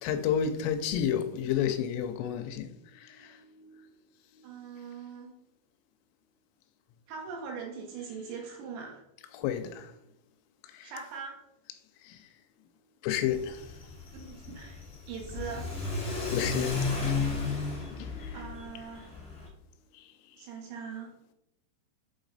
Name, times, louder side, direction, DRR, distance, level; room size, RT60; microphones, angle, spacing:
voice 1, 0.0-4.0 4.3-4.5 9.3-10.0 10.6-10.9 12.0-12.3 13.0-13.8 16.3-18.6 19.9-20.5, left 9 dB, 85° left, 3.0 m, -33 dB
voice 2, 4.4-5.3 7.1-9.0 10.8-11.4 14.1-15.7 17.9-18.1 18.3-19.2 20.4-21.1, right 6 dB, 75° right, 2.9 m, -41 dB
Car / Accelerating revving vroom, 13.3-19.5, left 4 dB, 30° left, 1.0 m, -34 dB
8.1 x 4.0 x 3.9 m
omnidirectional pair, 5.7 m